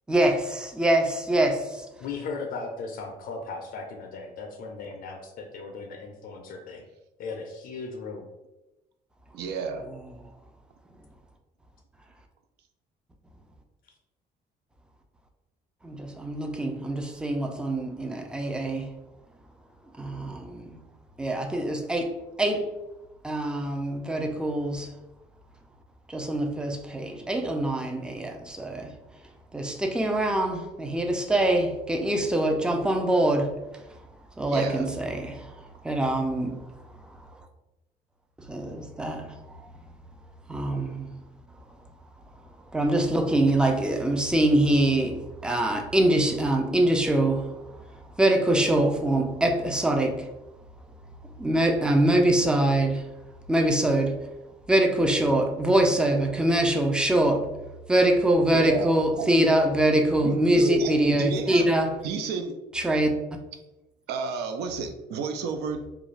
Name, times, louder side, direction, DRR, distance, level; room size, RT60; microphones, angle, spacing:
voice 1, 0.1-1.9 15.8-18.9 20.0-20.8 21.2-22.7 23.2-24.9 26.1-28.9 29.5-33.6 34.4-35.5 35.8-36.6 38.5-39.6 40.5-41.1 42.7-47.5 48.2-50.3 51.4-53.0 53.5-54.2 54.7-57.5 57.9-62.0 62.7-63.1, right 1 dB, 5° right, 0.3 m, -24 dB
voice 2, 2.0-6.9 7.2-8.3, left 4 dB, 60° left, 0.4 m, -37 dB
voice 3, 9.3-9.8 34.5-34.9 58.5-59.5 60.2-61.7 62.0-62.5 64.1-65.9, right 5 dB, 75° right, 0.4 m, -31 dB
2.4 x 2.2 x 3.1 m
cardioid pair, 110°, 17 cm